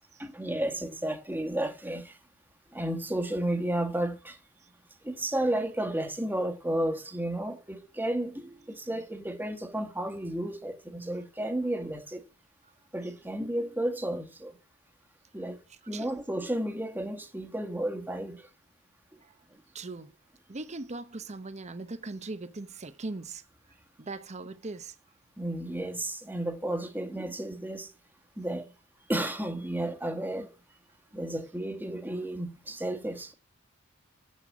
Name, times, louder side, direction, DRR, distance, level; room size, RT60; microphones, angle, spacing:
voice 1, 0.2-2.1 2.7-4.4 5.0-12.2 12.9-14.5 15.3-15.6 15.9-18.4 25.4-27.9 28.4-28.7 29.1-30.5 31.1-33.3, right 1 dB, 10° right, 1.5 m, -32 dB
voice 2, 19.7-20.1 20.5-23.4 24.0-24.9, right 3 dB, 30° right, 0.8 m, -39 dB
8.0 x 7.2 x 8.1 m
head